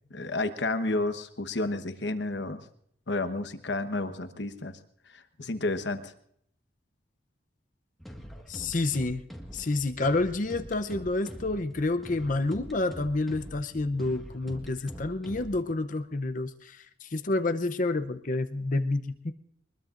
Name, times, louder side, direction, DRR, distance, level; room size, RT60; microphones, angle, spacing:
voice 1, 0.1-2.6 3.1-4.8 5.1-6.1, left 2 dB, 65° left, 9 dB, 1.2 m, -31 dB
sound 1, 8.0-15.7, equal, ahead, 1.6 m, -44 dB
voice 2, 8.5-9.2 9.5-19.3, left 2 dB, 45° left, 8 dB, 0.7 m, -29 dB
23.0 x 21.0 x 2.5 m, 0.69 s
head